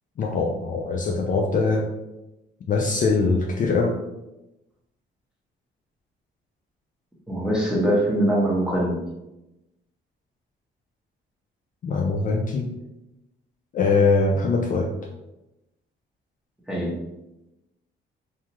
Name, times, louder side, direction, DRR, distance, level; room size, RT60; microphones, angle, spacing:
voice 1, 0.2-1.9 2.7-4.0 11.8-12.7 13.7-14.9, left 4 dB, 40° left, 1 dB, 0.4 m, -22 dB
voice 2, 7.3-9.0 16.7-17.0, right 1 dB, 5° right, -4 dB, 0.9 m, -22 dB
2.6 x 2.3 x 2.9 m, 0.95 s
cardioid pair, 90°, 20 cm